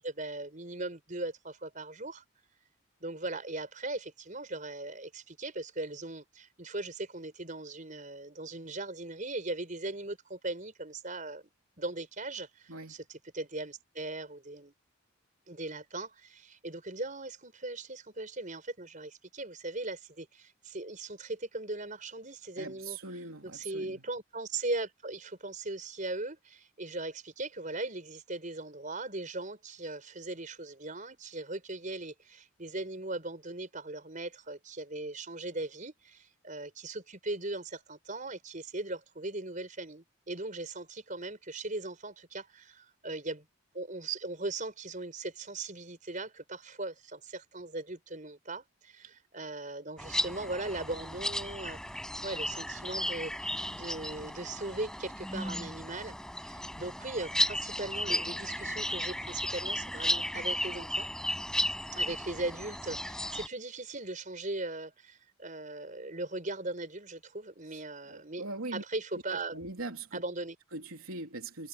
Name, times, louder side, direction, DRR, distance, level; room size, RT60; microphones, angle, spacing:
voice 1, 0.0-2.2 3.0-11.5 11.8-14.7 15.5-23.0 23.4-43.5 43.7-51.8 52.2-61.1 61.9-68.4 68.7-69.5 70.1-70.6, right 2 dB, 35° right, 5.3 m, -39 dB
voice 2, 22.6-24.0 67.7-67.8 68.1-68.8 69.3-70.2 70.7-71.7, right 2 dB, 85° right, 3.4 m, -41 dB
sound 1, 50.0-63.5, left 1 dB, 5° left, 6.8 m, -34 dB
head